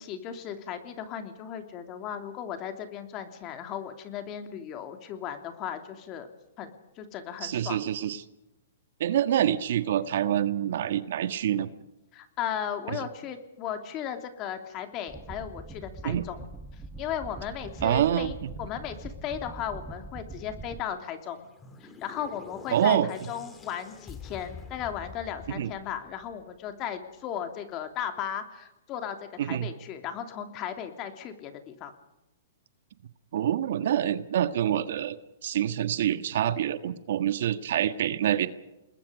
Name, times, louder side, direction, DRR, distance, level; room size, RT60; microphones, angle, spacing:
voice 1, 0.0-6.3 6.6-6.7 7.0-7.8 12.1-16.5 17.0-21.5 21.8-31.9, left 9 dB, 30° left, 7 dB, 3.1 m, -36 dB
voice 2, 7.4-8.2 9.0-11.7 16.0-16.2 17.8-18.5 22.7-23.1 25.5-25.7 29.4-29.7 33.3-35.2 35.4-38.5, right 10 dB, 65° right, 11 dB, 1.6 m, -26 dB
sound 1, 15.1-20.8, right 3 dB, 10° right, 1.7 m, -43 dB
sound 2, 21.2-26.6, left 4 dB, 15° left, 3.0 m, -46 dB
29.0 x 20.5 x 5.2 m, 0.97 s
hypercardioid pair, 135°, 0 cm